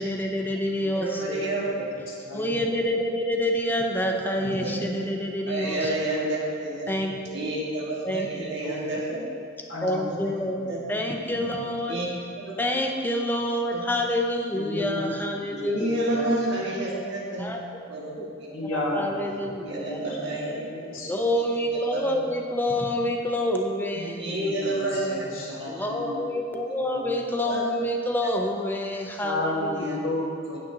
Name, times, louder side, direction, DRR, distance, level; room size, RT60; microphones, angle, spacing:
voice 1, 0.0-1.5 2.3-6.2 6.9-7.4 8.0-9.0 9.8-12.0 12.6-16.3 17.4-17.6 18.1-18.2 18.6-20.1 21.0-24.2 25.7-30.0, left 1 dB, 10° left, 2 dB, 0.6 m, -28 dB
voice 2, 0.9-1.7 4.2-4.9 5.5-6.9 7.3-9.2 10.1-10.2 10.7-10.8 11.9-12.1 12.4-12.6 13.7-13.8 15.6-17.5 17.9-18.5 19.6-20.6 21.9-22.1 24.2-25.3 25.6-25.8 27.5-27.8 28.2-28.3 29.7-30.0, right 1 dB, 60° right, -5 dB, 1.8 m, -30 dB
voice 3, 2.1-2.5 4.4-4.7 9.7-10.1 10.6-10.7 11.4-11.5 14.5-15.1 15.5-15.8 16.1-16.3 18.5-19.3 19.6-20.0 20.3-21.2 23.9-26.2 26.9-27.2 29.2-30.6, left 1 dB, 85° left, -3 dB, 1.6 m, -33 dB
8.9 x 8.7 x 2.8 m, 2.3 s
head